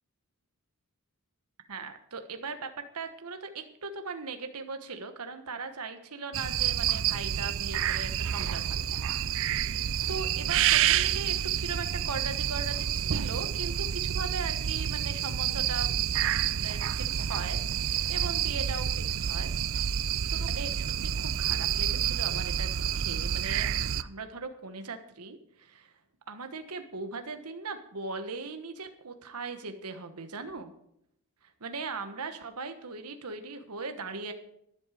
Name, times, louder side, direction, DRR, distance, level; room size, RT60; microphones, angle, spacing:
voice 1, 1.7-8.8 9.2-9.8 10.1-19.5 20.3-23.7 24.0-25.9 26.3-30.7 31.4-34.3, right 4 dB, 90° right, 7 dB, 1.3 m, -39 dB
sound 1, 6.3-24.0, right 9 dB, 60° right, 0.5 m, -29 dB
12.5 x 11.5 x 5.0 m, 0.74 s
head